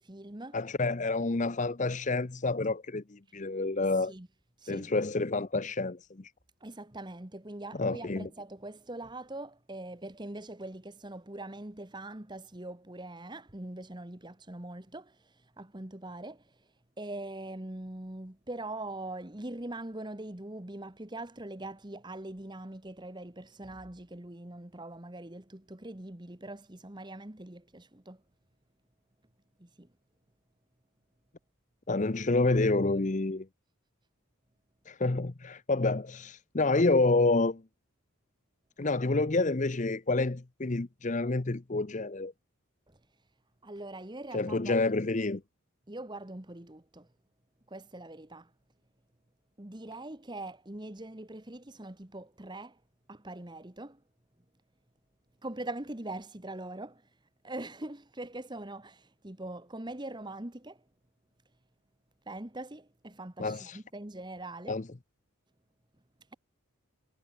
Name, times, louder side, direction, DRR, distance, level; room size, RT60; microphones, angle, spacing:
voice 1, 0.0-0.6 4.1-4.3 4.6-4.9 6.6-16.7 17.0-28.2 29.6-29.9 42.9-43.0 43.6-44.8 45.9-47.1 47.7-48.5 49.6-52.8 53.1-54.0 55.4-57.1 57.4-60.8 62.3-64.8, right 2 dB, 20° right, 1.2 m, -42 dB
voice 2, 0.5-4.1 4.7-6.3 7.8-8.3 31.9-33.5 34.9-37.6 38.8-42.3 44.3-45.4 63.4-63.8 64.7-64.8, left 3 dB, 35° left, 0.7 m, -28 dB
head